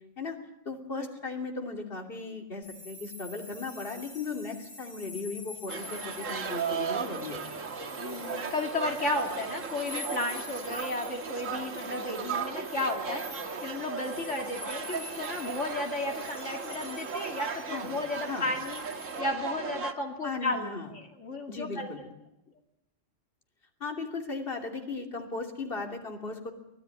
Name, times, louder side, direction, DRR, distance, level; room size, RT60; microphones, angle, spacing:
voice 1, 0.6-7.4 17.5-17.9 18.3-18.5 20.2-20.9 21.5-22.1 23.8-26.5, left 3 dB, 45° left, 2 dB, 3.1 m, -37 dB
sound 1, 2.6-19.2, left 4 dB, 30° left, 5.2 m, -47 dB
sound 2, 5.7-19.9, right 6 dB, 85° right, 1.8 m, -36 dB
voice 2, 8.0-20.6 20.9-21.9, left 2 dB, 65° left, 1 dB, 2.9 m, -34 dB
24.5 x 18.5 x 9.7 m, 0.87 s
omnidirectional pair, 1.3 m